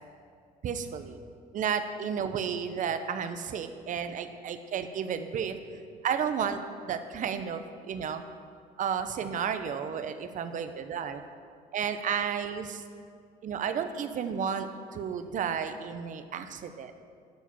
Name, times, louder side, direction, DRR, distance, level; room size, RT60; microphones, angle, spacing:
voice 1, 0.6-1.2 1.5-5.6 6.0-6.6 6.8-7.6 7.9-8.2 8.8-11.2 11.7-12.8 13.4-16.9, right 7 dB, 50° right, 9 dB, 0.7 m, -32 dB
11.5 x 4.9 x 7.0 m, 2.2 s
cardioid pair, 110°, 17 cm